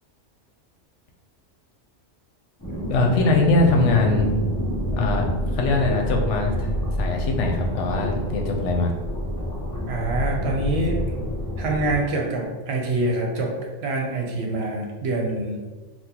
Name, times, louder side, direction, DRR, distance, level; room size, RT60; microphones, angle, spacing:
sound 1, 2.6-12.0, equal, 20° left, 0.7 m, -28 dB
voice 1, 2.9-4.3 4.9-5.3 5.5-6.7 7.0-8.9, left 3 dB, 80° left, 2 dB, 0.9 m, -21 dB
voice 2, 9.8-11.0 11.6-15.6, right 2 dB, 65° right, 1 dB, 0.8 m, -25 dB
3.7 x 2.3 x 2.9 m, 1.3 s
omnidirectional pair, 1.2 m